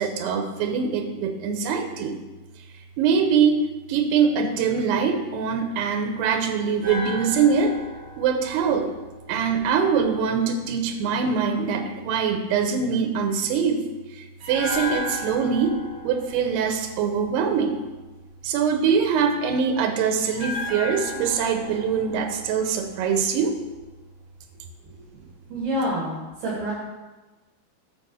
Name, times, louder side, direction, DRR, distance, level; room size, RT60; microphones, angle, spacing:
voice 1, 0.0-2.2 3.0-3.6 3.9-7.8 8.2-8.9 9.3-13.8 14.5-15.8 16.0-17.8 18.4-23.5, right 6 dB, 90° right, 5 dB, 2.9 m, -23 dB
sound 1, 6.8-10.0 14.4-17.6 20.3-23.5 23.7-23.9, left 2 dB, 45° right, 3.5 m, -35 dB
voice 2, 25.5-26.7, equal, 75° right, -7 dB, 4.0 m, -27 dB
9.2 x 4.7 x 7.0 m, 1.2 s
omnidirectional pair, 4.7 m